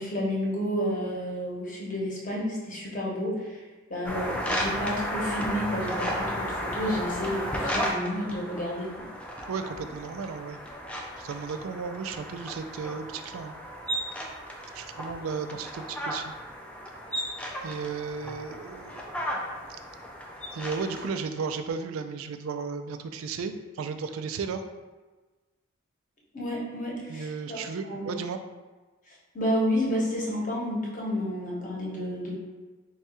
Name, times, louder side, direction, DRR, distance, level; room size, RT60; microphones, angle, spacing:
voice 1, 0.0-3.6 3.9-9.0 26.3-28.1 29.3-32.4, equal, 40° left, -4 dB, 0.9 m, -30 dB
sound 1, 4.0-21.1, equal, 5° left, 0.3 m, -34 dB
voice 2, 9.5-10.6 11.2-13.6 14.7-16.3 17.6-19.4 19.7-19.8 20.5-24.6 27.1-28.4, right 5 dB, 85° right, 8 dB, 0.3 m, -34 dB
3.6 x 2.3 x 4.2 m, 1.2 s
head